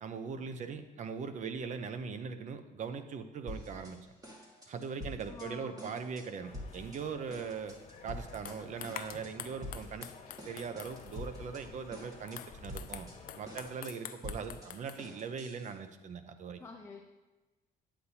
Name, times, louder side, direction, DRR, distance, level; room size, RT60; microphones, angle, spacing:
voice 1, 0.0-4.0 4.7-10.1 10.5-13.1 13.3-16.6, right 6 dB, 45° right, 10 dB, 0.7 m, -40 dB
sound 1, 3.5-3.9 4.2-5.5 5.8-6.3 6.5-7.0 7.3-8.5 8.8-9.3 9.6-10.1 10.4-11.6 11.9-12.4 12.7-15.7, left 1 dB, 20° right, 1.8 m, -46 dB
voice 2, 5.3-5.9 16.6-17.0, left 3 dB, 15° left, 1 dB, 0.7 m, -47 dB
sound 2, 6.4-13.7, left 4 dB, 40° left, 1.4 m, -53 dB
sound 3, 7.7-7.8 8.3-11.3 12.0-15.0, left 11 dB, 60° left, 0.5 m, -47 dB
9.7 x 8.3 x 2.8 m, 1.1 s
cardioid pair, 110°, 17 cm